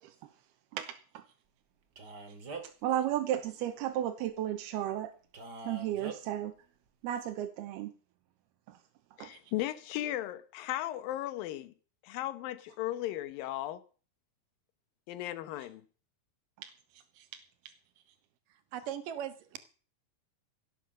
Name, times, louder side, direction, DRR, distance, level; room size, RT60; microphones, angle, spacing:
voice 1, 0.7-1.3 2.6-5.1 5.6-6.5 7.0-7.9 8.7-8.8 9.2-9.4 16.6-17.3, right 12 dB, 85° right, 3.0 m, -34 dB
Male speech man speaking, 2.0-2.8 5.3-6.2, right 3 dB, 30° right, 2.2 m, -43 dB
voice 2, 9.2-11.7 12.0-13.8 15.1-15.8, left 14 dB, 70° left, 2.5 m, -36 dB
voice 3, 18.5-19.6, right 10 dB, 65° right, 2.8 m, -39 dB
16.5 x 10.0 x 6.6 m
omnidirectional pair, 4.6 m